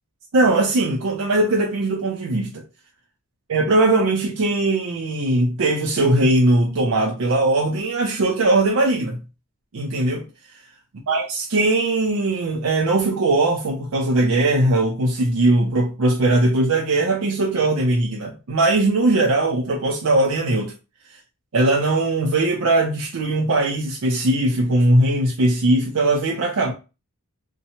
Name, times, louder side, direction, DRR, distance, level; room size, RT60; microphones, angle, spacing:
voice 1, 0.3-2.6 3.5-9.2 9.7-10.2 11.1-20.7 21.5-26.7, right 2 dB, 70° right, 0.5 m, -20 dB
2.8 x 2.1 x 2.7 m
head